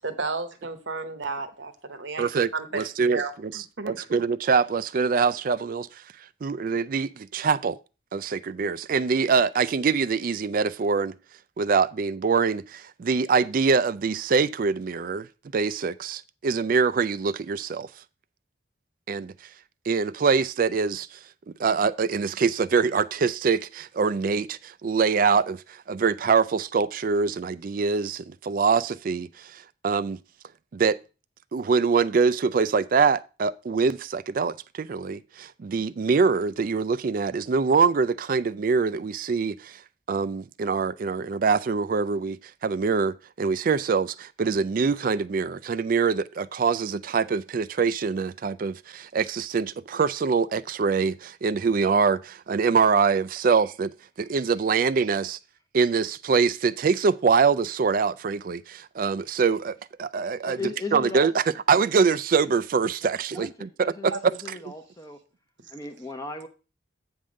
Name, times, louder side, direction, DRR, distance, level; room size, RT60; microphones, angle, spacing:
voice 1, 0.0-4.1 64.1-64.2, right 4 dB, 65° right, 1.0 m, -33 dB
voice 2, 2.2-6.0 6.4-7.8 8.1-11.1 11.6-15.3 15.5-17.9 19.1-19.3 19.9-21.2 21.6-30.2 30.7-31.0 31.5-39.8 40.1-42.4 42.6-55.4 55.7-60.6 60.9-61.3 61.7-64.3, right 5 dB, 45° right, 0.3 m, -24 dB
voice 3, 60.4-61.3 63.0-65.2 65.7-66.5, left 3 dB, 15° left, 0.6 m, -37 dB
8.8 x 3.6 x 6.3 m
head